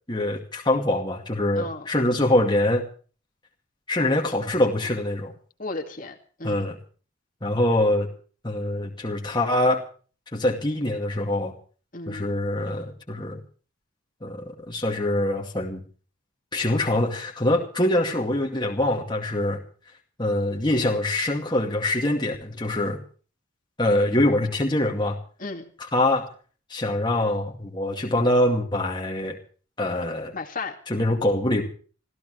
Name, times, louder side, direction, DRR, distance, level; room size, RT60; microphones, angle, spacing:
voice 1, 0.1-2.8 3.9-5.3 6.4-6.8 7.4-8.1 8.4-9.8 10.3-11.5 12.1-13.4 14.2-15.8 16.5-19.6 20.2-23.0 23.8-25.2 25.9-26.3 26.7-29.4 29.8-30.3 30.9-31.6, left 1 dB, 20° left, 1 dB, 2.3 m, -24 dB
voice 2, 1.6-1.9 5.6-6.7 11.9-12.3 25.4-25.6 30.3-30.8, left 3 dB, 40° left, 3 dB, 2.3 m, -34 dB
27.0 x 15.5 x 3.3 m, 0.41 s
head